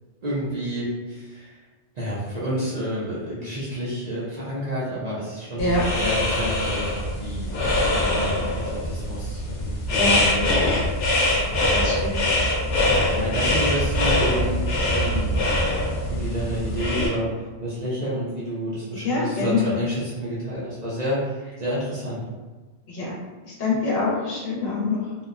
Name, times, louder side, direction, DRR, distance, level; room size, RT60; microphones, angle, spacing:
voice 1, 0.2-1.6 1.9-5.7 6.0-10.8 13.1-15.5 16.1-17.3 17.6-22.2, equal, 45° right, -9 dB, 0.6 m, -29 dB
sound 1, 5.6-17.1, left 1 dB, 90° left, 0.9 m, -23 dB
voice 2, 11.7-12.1 12.4-12.5 13.4-13.5 18.9-19.6 22.9-23.1 23.4-25.0, left 3 dB, 65° left, -5 dB, 1.0 m, -25 dB
2.8 x 2.1 x 2.4 m, 1.3 s
omnidirectional pair, 1.2 m